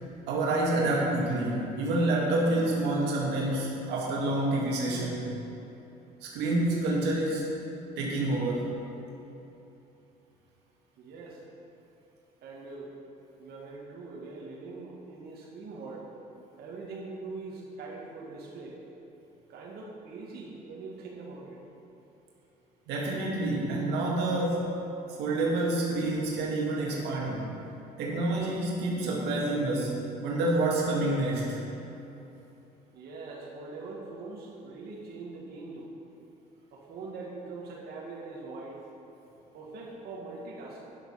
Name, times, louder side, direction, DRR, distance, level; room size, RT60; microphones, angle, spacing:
voice 1, 0.3-5.3 6.2-7.6 8.0-8.7 22.9-24.7 25.2-27.5 28.0-31.6, right 2 dB, 90° right, -3 dB, 2.1 m, -28 dB
voice 2, 11.0-11.4 12.4-12.9 13.4-16.1 16.6-18.8 19.5-21.6 32.9-35.9 36.7-38.8 39.5-40.9, right 3 dB, 70° right, -4 dB, 2.0 m, -42 dB
10.0 x 7.2 x 5.8 m, 3.0 s
cardioid pair, 110°, 17 cm